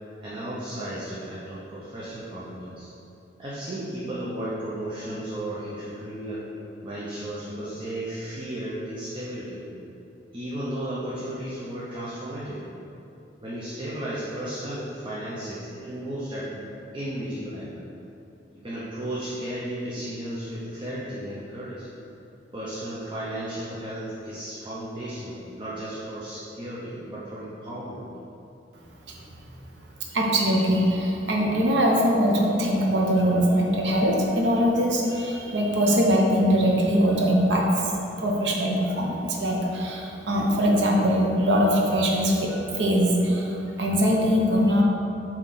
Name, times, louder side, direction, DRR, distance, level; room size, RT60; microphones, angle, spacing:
voice 1, 0.2-2.9 3.4-6.5 6.8-9.6 10.3-12.6 13.4-17.7 18.5-21.9 22.5-28.0, right 1 dB, 30° right, -8 dB, 0.7 m, -34 dB
voice 2, 29.1-29.5 30.1-37.9 38.2-44.8, equal, 75° right, -1 dB, 0.9 m, -22 dB
7.6 x 3.1 x 3.9 m, 2.9 s
head